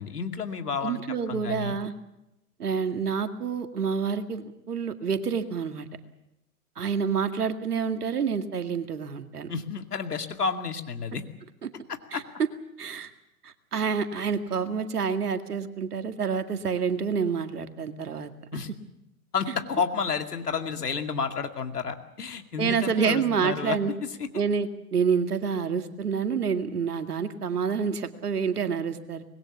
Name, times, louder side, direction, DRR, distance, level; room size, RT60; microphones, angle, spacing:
voice 1, 0.0-1.0 1.3-1.8 9.5-11.2 12.1-12.2 18.5-18.7 19.3-24.3, left 5 dB, 85° left, 7 dB, 2.4 m, -31 dB
voice 2, 0.8-1.9 2.6-5.9 6.8-9.5 11.6-11.7 12.1-12.2 12.8-13.1 13.4-18.3 22.6-23.9 24.3-29.3, right 6 dB, 80° right, 8 dB, 2.2 m, -28 dB
25.0 x 21.0 x 7.2 m, 0.90 s
hypercardioid pair, 115°, 45 cm